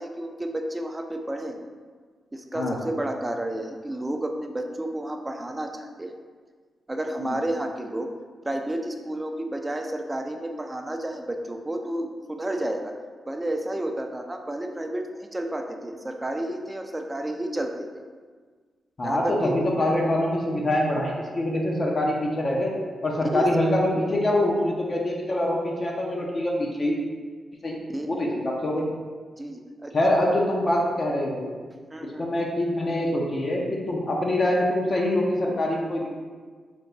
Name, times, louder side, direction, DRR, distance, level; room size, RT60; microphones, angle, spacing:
voice 1, 0.0-1.6 2.3-6.1 6.9-8.1 8.4-12.9 13.3-18.0 19.0-19.6 23.3-23.5 27.9-28.1 29.4-29.9 30.2-30.3 31.9-32.3, right 1 dB, 20° right, 4 dB, 0.4 m, -31 dB
voice 2, 19.0-22.7 23.0-27.0 27.6-27.8 28.1-28.9 29.9-31.5 32.2-36.1, left 1 dB, 45° left, -2 dB, 0.6 m, -24 dB
3.4 x 2.2 x 3.9 m, 1.5 s
cardioid pair, 55°, 0 cm